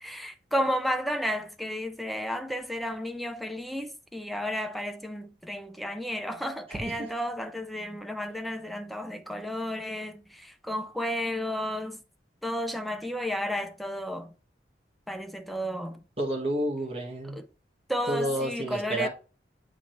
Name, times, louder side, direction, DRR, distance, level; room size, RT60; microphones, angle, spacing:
voice 1, 0.0-10.2 10.6-12.0 12.4-14.3 15.1-16.0 17.9-19.1, equal, ahead, 0.6 m, -32 dB
voice 2, 6.7-7.1 16.2-17.4 18.1-19.1, right 1 dB, 35° right, 1.7 m, -30 dB
8.7 x 3.3 x 4.4 m
head